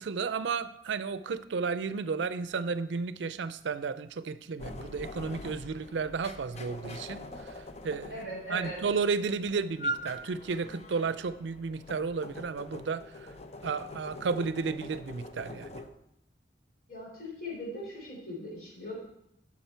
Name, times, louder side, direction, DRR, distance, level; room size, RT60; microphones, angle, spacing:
voice 1, 0.0-8.2 8.5-13.3 13.6-15.8, right 5 dB, 85° right, 14 dB, 0.5 m, -33 dB
sound 1, 4.6-15.9, equal, 40° left, 0.7 m, -43 dB
voice 2, 8.1-8.8 16.9-18.9, left 1 dB, 55° left, -3 dB, 3.7 m, -39 dB
10.0 x 6.1 x 4.5 m, 0.77 s
head